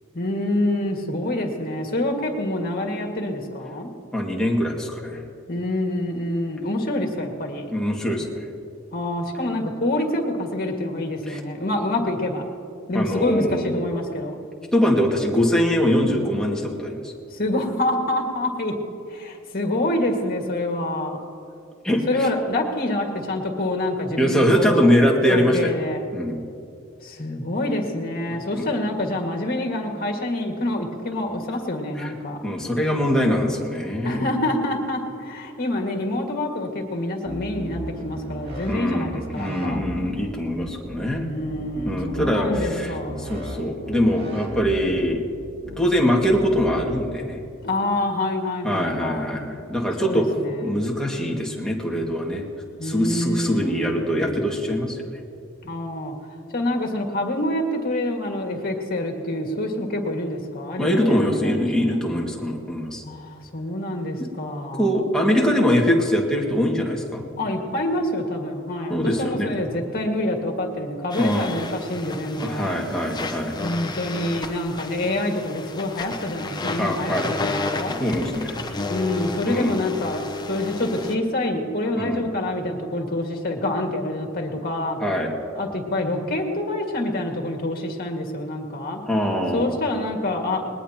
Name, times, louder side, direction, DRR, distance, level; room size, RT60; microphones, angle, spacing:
voice 1, 0.1-3.9 5.5-7.7 8.9-12.4 12.9-14.4 17.3-18.7 19.1-21.2 22.1-24.9 25.3-26.0 27.0-32.4 34.0-39.9 41.3-43.4 47.6-49.4 50.0-50.8 52.8-54.6 55.6-56.1 56.5-62.0 63.0-65.0 67.4-72.9 73.6-78.0 78.9-85.0 85.6-89.0 89.5-90.7, left 1 dB, 50° left, 2 dB, 2.0 m, -26 dB
voice 2, 4.1-5.2 7.7-8.5 11.3-11.4 12.9-13.8 14.7-17.1 21.8-22.0 24.2-25.8 26.1-26.4 28.6-28.7 32.0-32.1 32.4-34.3 38.7-39.1 39.3-41.3 41.9-45.3 45.8-47.4 48.6-50.3 50.6-52.4 52.8-55.0 60.8-63.0 64.2-64.3 64.8-67.3 68.9-69.5 71.2-71.5 72.4-73.6 76.8-77.3 78.0-78.6 79.5-79.7 82.0-82.2 85.0-85.3 89.1-89.7, equal, 5° left, -2 dB, 2.0 m, -22 dB
sound 1, 37.3-38.7 39.0-40.3 40.8-41.1 41.4-43.5 43.8-45.1 45.6-45.9 46.2-46.8, right 1 dB, 55° right, 2.4 m, -35 dB
sound 2, 71.1-81.1, left 3 dB, 20° left, 0.9 m, -32 dB
20.0 x 20.0 x 2.9 m, 2.4 s
head